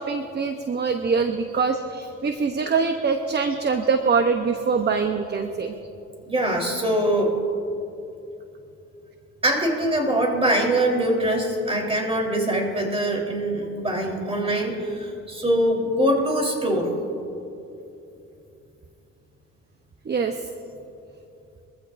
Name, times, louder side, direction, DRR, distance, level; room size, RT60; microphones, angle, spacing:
voice 1, 0.0-5.7 20.1-20.4, right 5 dB, 35° right, 6 dB, 0.8 m, -24 dB
voice 2, 6.3-7.3 9.4-16.9, right 1 dB, 20° right, 0 dB, 3.6 m, -23 dB
22.5 x 15.0 x 2.6 m, 2.8 s
cardioid pair, 90°, 30 cm